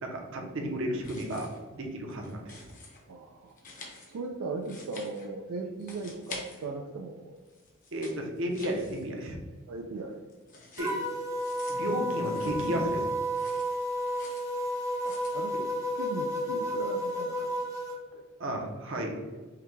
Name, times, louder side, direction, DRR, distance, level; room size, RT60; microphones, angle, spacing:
voice 1, 0.0-2.7 5.6-5.7 7.9-9.4 10.8-10.9 11.7-13.1 18.4-19.2, right 1 dB, 60° right, 2 dB, 0.7 m, -33 dB
sound 1, 0.9-1.7 2.0-3.0 3.5-5.5 5.8-7.0 7.4-9.5 9.8-12.9 13.2-14.5 14.9-15.4, left 3 dB, 40° left, 0.8 m, -48 dB
voice 2, 3.1-7.4 9.7-10.2 15.0-15.7 16.0-17.9 18.1-18.3, right 3 dB, 90° right, 3 dB, 0.4 m, -39 dB
sound 2, 10.8-18.0, equal, 15° right, 0.5 m, -32 dB
5.7 x 2.2 x 3.2 m, 1.3 s
head